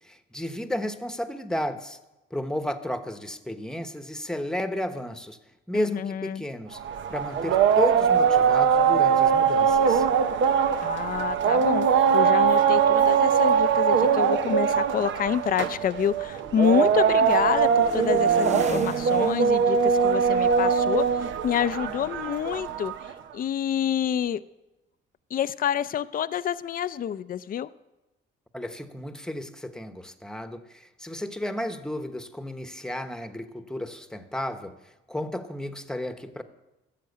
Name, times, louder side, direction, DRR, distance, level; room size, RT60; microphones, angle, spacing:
voice 1, 0.0-2.0 2.3-5.4 5.7-6.8 7.1-10.1 28.5-36.4, left 1 dB, 5° left, 9 dB, 1.0 m, -33 dB
voice 2, 5.7-6.4 10.8-11.9 12.1-22.9 23.3-24.4 25.3-27.7, left 9 dB, 45° left, 14 dB, 0.5 m, -27 dB
sound 1, 6.8-23.1, right 7 dB, 70° right, 0.8 m, -22 dB
sound 2, 16.3-22.9, right 2 dB, 35° right, 1.2 m, -41 dB
13.5 x 7.6 x 8.1 m, 1.0 s
cardioid pair, 90°, 20 cm